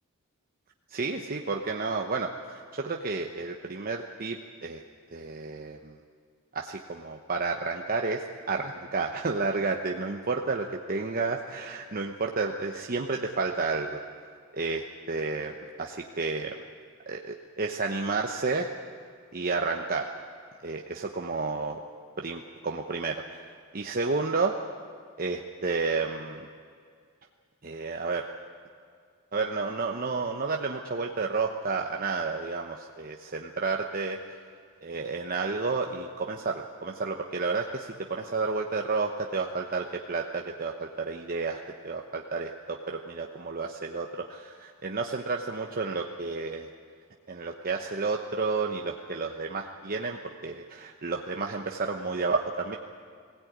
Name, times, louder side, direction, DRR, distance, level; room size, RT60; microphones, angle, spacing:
voice 1, 0.9-4.8 5.1-6.0 6.5-14.0 14.5-16.6 17.1-18.7 19.3-20.1 20.6-21.8 22.2-23.4 23.7-24.6 25.2-26.5 27.6-28.3 29.3-34.2 34.8-46.7 47.3-52.8, right 4 dB, 40° right, 2 dB, 1.0 m, -31 dB
21.0 x 16.5 x 9.4 m, 2.2 s
head